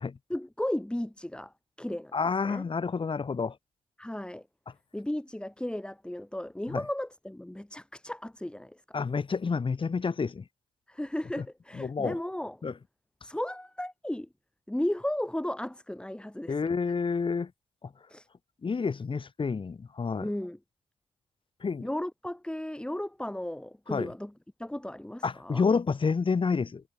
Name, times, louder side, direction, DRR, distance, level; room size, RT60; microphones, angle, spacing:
voice 1, 0.3-2.1 2.4-2.7 4.0-4.4 4.9-8.8 10.9-12.6 13.2-14.3 14.7-16.6 18.1-18.3 20.2-20.6 21.8-24.3 24.6-25.6, left 1 dB, 10° left, 6.2 m, -35 dB
voice 2, 2.1-3.5 6.7-6.8 8.9-10.4 11.4-11.5 11.7-12.1 12.6-12.7 16.5-17.5 18.6-20.3 21.6-21.9 23.9-24.1 25.2-26.8, left 5 dB, 45° left, 6.8 m, -29 dB
supercardioid pair, 55°, 12 cm